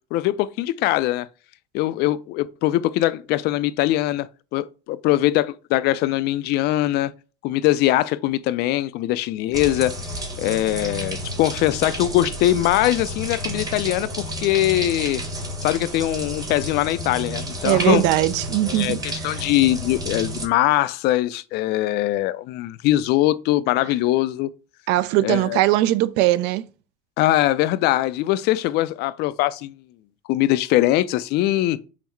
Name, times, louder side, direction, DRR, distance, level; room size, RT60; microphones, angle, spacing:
voice 1, 0.1-1.3 1.7-7.1 7.4-9.9 10.4-15.2 15.6-18.0 18.7-24.5 25.2-25.6 27.2-29.7 30.3-31.8, left 15 dB, 55° left, 0.4 m, -22 dB
sound 1, 9.5-20.5, right 1 dB, 20° right, 1.0 m, -31 dB
voice 2, 17.6-19.4 24.9-26.7, right 15 dB, 60° right, 0.4 m, -20 dB
5.7 x 2.1 x 4.5 m
supercardioid pair, 120°, 20 cm